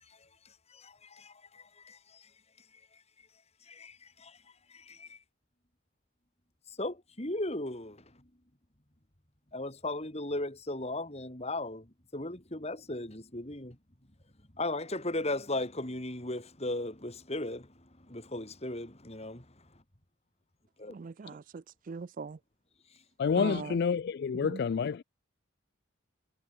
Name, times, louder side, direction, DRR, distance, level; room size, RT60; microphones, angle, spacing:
voice 1, 0.0-5.2 6.7-8.3 9.5-13.8 14.5-19.8 20.8-21.0 21.2-21.4 22.9-23.0, left 2 dB, 30° left, 3.1 m, -38 dB
voice 2, 20.9-22.4 23.3-23.8 24.3-24.6, right 4 dB, 40° right, 0.4 m, -40 dB
voice 3, 23.2-25.0, left 6 dB, 50° left, 0.3 m, -28 dB
head